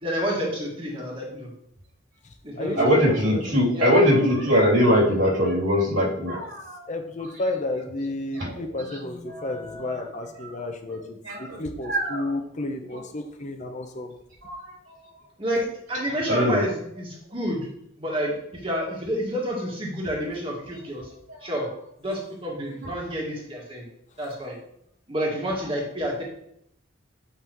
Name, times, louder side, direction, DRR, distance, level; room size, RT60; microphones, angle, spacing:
voice 1, 0.0-1.5 2.4-3.1 3.7-3.9 15.4-17.6 18.0-21.1 21.4-21.7 22.0-23.8 24.2-24.5 25.1-26.2, equal, 30° right, -2 dB, 1.9 m, -29 dB
voice 2, 2.2-3.5 6.9-14.1, left 2 dB, 40° left, 5 dB, 0.8 m, -32 dB
voice 3, 2.8-6.8 8.4-8.5 9.3-9.6 11.2-11.6 11.9-12.2 14.4-14.7 16.3-16.6, equal, 80° right, -5 dB, 3.0 m, -21 dB
8.0 x 5.6 x 3.0 m, 0.74 s
head